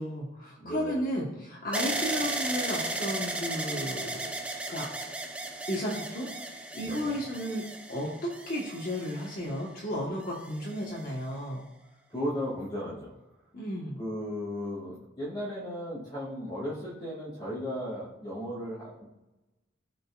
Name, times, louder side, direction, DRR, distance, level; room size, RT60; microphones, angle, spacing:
voice 1, 0.0-4.2 4.7-4.9 5.7-6.3 6.7-7.6 7.9-11.6 13.5-14.0, equal, 45° left, -4 dB, 1.3 m, -33 dB
voice 2, 0.6-1.0 6.8-7.2 12.1-13.1 14.0-19.0, equal, 20° left, -7 dB, 2.2 m, -35 dB
sound 1, 1.7-9.7 10.4-11.1, right 2 dB, 5° right, 0.7 m, -35 dB
14.5 x 5.2 x 2.4 m, 1.0 s
head